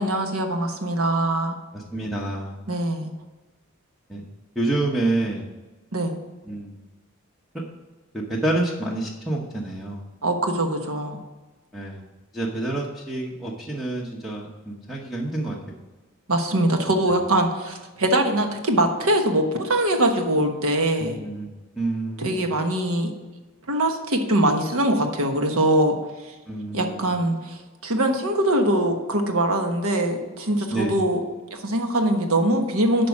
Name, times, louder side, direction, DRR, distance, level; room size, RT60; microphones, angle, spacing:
voice 1, 0.0-1.6 2.7-3.1 5.9-6.2 10.2-11.2 16.3-21.2 22.2-23.1 23.7-26.0 26.7-31.2 31.5-33.1, right 1 dB, 85° right, 5 dB, 1.2 m, -22 dB
voice 2, 1.7-2.6 4.1-4.2 4.5-5.4 6.4-6.8 8.1-10.0 11.7-12.0 12.3-15.8 21.0-22.4 26.5-27.1 30.7-31.0, right 2 dB, ahead, -2 dB, 0.9 m, -28 dB
8.8 x 5.1 x 6.0 m, 1.2 s
head